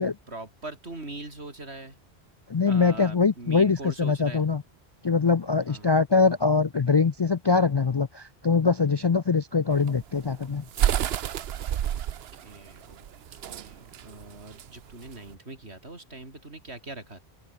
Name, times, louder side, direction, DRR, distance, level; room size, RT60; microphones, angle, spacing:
voice 1, 0.3-2.0 2.7-4.5 5.7-5.9 11.9-12.0 12.3-13.1 13.3-17.2, right 2 dB, 90° right, 4.6 m, -42 dB
voice 2, 2.5-4.6 5.0-10.6, left 4 dB, 45° left, 0.3 m, -23 dB
sound 1, 9.7-15.3, right 10 dB, 70° right, 0.9 m, -29 dB
open air
omnidirectional pair, 1.1 m